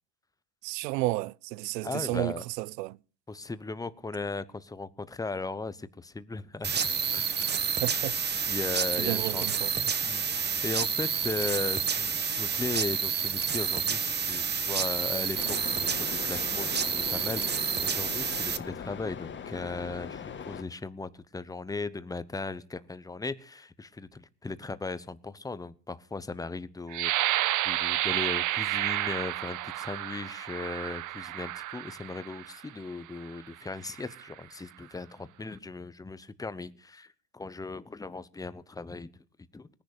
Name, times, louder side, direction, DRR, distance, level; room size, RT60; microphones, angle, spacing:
voice 1, 0.6-3.0 7.8-8.2 9.0-9.7, right 20 dB, 90° right, 0.8 m, -32 dB
voice 2, 1.8-2.4 3.3-7.6 8.5-9.5 9.7-39.1 39.5-39.7, left 3 dB, 5° left, 0.9 m, -37 dB
sound 1, 6.6-18.6, right 7 dB, 20° right, 1.3 m, -29 dB
sound 2, 15.3-20.6, left 7 dB, 25° left, 1.6 m, -40 dB
sound 3, 26.9-32.6 33.2-33.4 33.9-34.3, right 15 dB, 40° right, 0.8 m, -31 dB
19.0 x 10.5 x 6.7 m
supercardioid pair, 125°, 48 cm